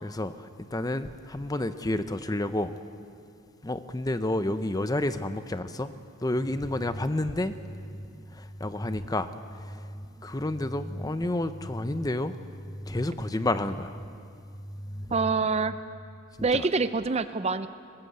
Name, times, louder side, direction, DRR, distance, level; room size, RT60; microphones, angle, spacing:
voice 1, 0.0-2.7 3.6-5.9 6.2-7.6 8.3-9.3 9.6-9.9 10.2-12.3 12.9-13.9 16.4-16.7, left 1 dB, 15° left, 11 dB, 0.6 m, -30 dB
sound 1, 6.3-15.5, equal, 60° left, 2.6 m, -42 dB
voice 2, 15.1-15.8 16.4-17.7, right 4 dB, 30° right, 12 dB, 0.5 m, -26 dB
20.0 x 18.0 x 8.0 m, 2.4 s
head